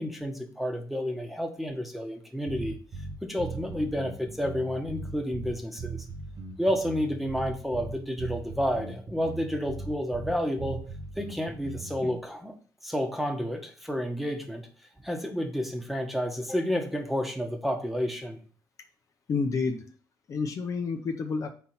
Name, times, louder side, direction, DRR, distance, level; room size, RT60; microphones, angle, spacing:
voice 1, 0.0-2.8 3.2-6.1 6.6-10.8 11.2-12.5 12.8-14.7 15.0-18.4, equal, ahead, 3 dB, 1.2 m, -30 dB
sound 1, 2.5-12.1, right 3 dB, 60° right, 1.8 m, -39 dB
voice 2, 19.3-19.8 20.3-21.5, left 4 dB, 50° left, 5 dB, 0.8 m, -29 dB
4.6 x 4.1 x 5.6 m, 0.42 s
cardioid pair, 95°, 7 cm